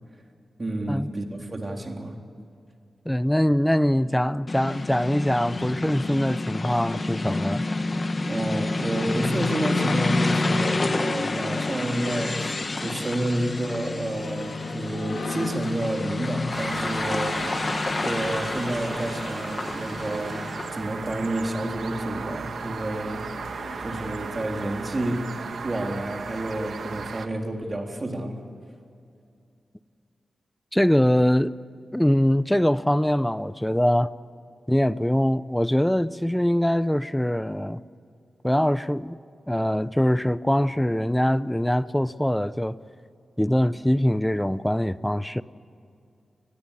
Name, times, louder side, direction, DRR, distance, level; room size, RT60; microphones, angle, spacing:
voice 1, 0.6-2.2 8.3-17.7 18.0-23.4 23.8-25.3 25.6-28.4, right 1 dB, 30° right, 3.7 m, -30 dB
voice 2, 3.1-7.6 30.7-31.5 31.9-34.1 34.7-37.8 38.4-39.2 39.5-42.8 43.4-45.4, equal, 5° left, 0.7 m, -23 dB
sound 1, 4.5-20.9, left 3 dB, 35° left, 1.5 m, -29 dB
sound 2, 11.6-25.5, left 3 dB, 70° left, 3.5 m, -42 dB
sound 3, 16.5-27.3, right 5 dB, 75° right, 1.4 m, -36 dB
30.0 x 20.0 x 8.7 m
wide cardioid pair, 90°, 0 cm